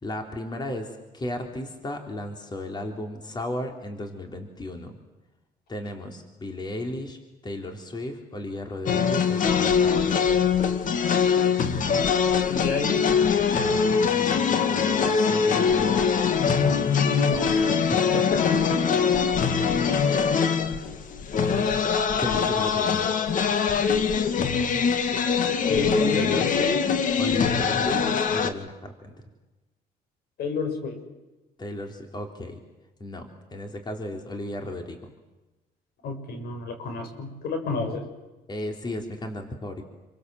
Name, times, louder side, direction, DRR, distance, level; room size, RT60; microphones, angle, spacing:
voice 1, 0.0-4.9 5.7-10.4 14.0-16.1 17.9-18.2 20.1-20.5 22.2-23.2 25.7-26.8 27.2-29.1 31.6-32.6 33.0-35.1 38.5-39.8, left 1 dB, 25° left, 4 dB, 3.7 m, -34 dB
sound 1, 8.9-28.5, left 6 dB, 50° left, 2.2 m, -23 dB
voice 2, 12.5-13.1 17.2-17.7 18.7-18.8 25.7-26.7 30.4-31.0 36.0-38.0, left 4 dB, 70° left, 5 dB, 6.9 m, -30 dB
29.5 x 24.0 x 7.9 m, 1.1 s
cardioid pair, 110°, 17 cm